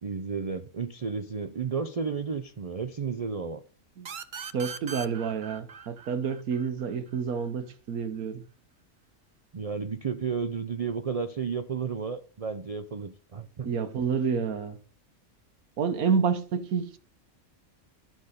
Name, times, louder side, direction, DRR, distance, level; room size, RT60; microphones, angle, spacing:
voice 1, 0.0-3.6 9.5-13.7, right 5 dB, 65° right, 0.3 m, -32 dB
sound 1, 4.1-7.5, right 6 dB, 45° right, 0.7 m, -41 dB
voice 2, 4.5-8.4 13.6-14.8 15.8-17.0, right 6 dB, 85° right, 1.4 m, -29 dB
12.0 x 6.3 x 5.0 m
omnidirectional pair, 1.5 m